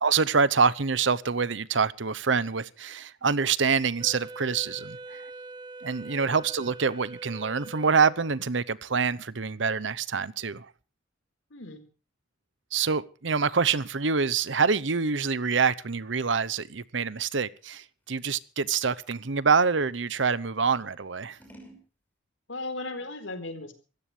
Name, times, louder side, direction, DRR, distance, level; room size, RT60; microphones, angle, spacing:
voice 1, 0.0-5.2 5.8-10.7 12.7-21.4, right 5 dB, 70° right, 0.9 m, -26 dB
Wind instrument woodwind instrument, 4.0-8.5, right 2 dB, 25° right, 0.8 m, -43 dB
voice 2, 11.5-11.9 22.5-23.7, left 2 dB, 80° left, 4.3 m, -37 dB
Scissors, 15.4-20.2 20.7-21.9, right 1 dB, 10° left, 5.6 m, -58 dB
25.5 x 15.0 x 3.3 m
head